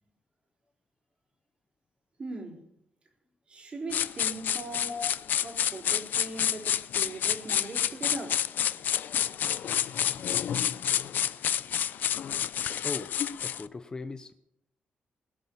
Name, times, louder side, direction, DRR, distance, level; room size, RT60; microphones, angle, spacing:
voice 1, 2.2-2.6 3.5-5.0 5.4-8.4 11.7-11.8, right 2 dB, 35° right, 4.1 m, -39 dB
sound 1, 3.9-13.7, left 9 dB, 70° left, 0.6 m, -29 dB
voice 2, 13.4-14.3, left 4 dB, 25° left, 0.8 m, -38 dB
21.0 x 8.3 x 7.1 m
wide cardioid pair, 140°, 3 cm